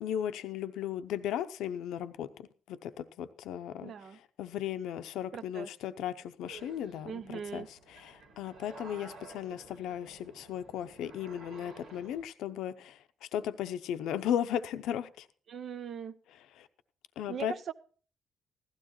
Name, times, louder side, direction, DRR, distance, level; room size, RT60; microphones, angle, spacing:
voice 1, 0.0-15.3 16.5-16.7 17.2-17.5, left 10 dB, 85° left, 0.6 m, -36 dB
voice 2, 3.8-4.2 5.3-5.7 7.0-7.7 15.5-16.1 17.3-17.7, right 7 dB, 60° right, 0.7 m, -40 dB
sound 1, 6.5-12.2, right 3 dB, 80° right, 2.8 m, -52 dB
16.0 x 12.5 x 3.1 m
cardioid pair, 90°, 0 cm